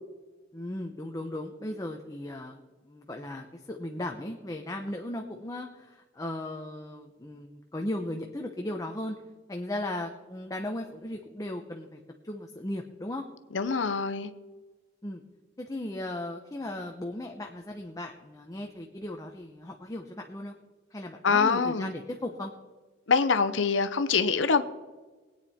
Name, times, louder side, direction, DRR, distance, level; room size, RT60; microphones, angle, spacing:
voice 1, 0.5-2.6 2.8-9.2 9.5-13.3 15.0-15.2 15.6-20.5 20.9-22.5, left 1 dB, 20° left, 3 dB, 0.8 m, -36 dB
voice 2, 13.5-14.3 21.2-21.9 23.1-24.6, left 5 dB, 80° left, 10 dB, 0.8 m, -24 dB
20.5 x 9.1 x 4.3 m, 1.3 s
head